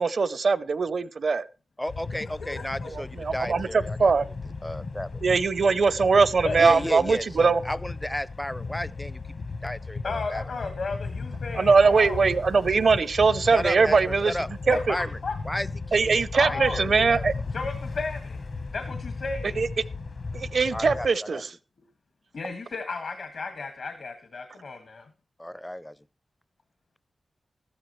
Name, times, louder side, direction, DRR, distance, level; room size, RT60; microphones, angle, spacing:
voice 1, 0.0-1.5 3.2-4.2 5.2-7.6 11.5-14.4 14.7-15.0 15.9-17.3 19.6-19.7 20.3-21.5, right 4 dB, 65° right, 0.6 m, -21 dB
voice 2, 1.8-4.1 4.6-5.2 6.6-10.4 13.5-14.5 14.9-15.2 15.4-17.3 20.7-21.4 25.4-26.0, left 1 dB, 10° left, 0.5 m, -33 dB
sound 1, 1.9-21.1, left 4 dB, 60° left, 1.1 m, -36 dB
voice 3, 2.4-2.9 6.4-6.9 10.0-12.2 14.7-15.3 16.4-17.1 17.5-18.4 18.7-19.6 22.3-25.1, left 4 dB, 75° left, 1.8 m, -34 dB
14.0 x 12.0 x 3.1 m
wide cardioid pair, 100°, 0 cm